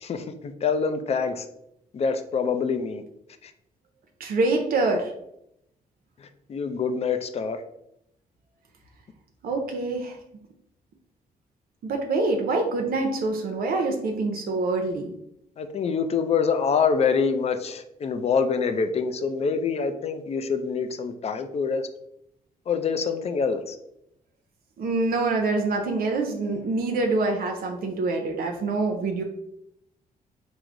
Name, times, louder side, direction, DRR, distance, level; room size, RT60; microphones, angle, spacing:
voice 1, 0.0-1.5 1.9-3.0 3.4-3.5 6.5-7.6 15.6-21.9 22.7-23.8, left 5 dB, 45° left, 8 dB, 0.4 m, -25 dB
voice 2, 4.2-5.1 9.4-10.2 11.8-15.1 24.8-29.2, right 3 dB, 75° right, 3 dB, 0.6 m, -25 dB
4.6 x 2.0 x 3.7 m, 0.79 s
cardioid pair, 95°, 15 cm